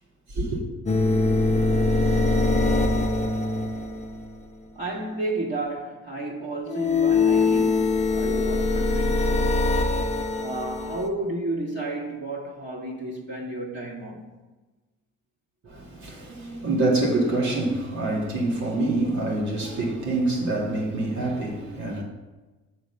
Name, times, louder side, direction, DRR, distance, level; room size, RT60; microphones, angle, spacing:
voice 1, 0.3-0.6 15.6-22.0, right 2 dB, 70° right, 2.1 m, -26 dB
sound 1, 0.8-4.4 6.7-11.1, left 3 dB, 25° left, 0.6 m, -23 dB
voice 2, 4.7-9.7 10.4-14.2, right 2 dB, 40° right, 1.9 m, -32 dB
7.2 x 4.0 x 6.5 m
cardioid pair, 90°, 30 cm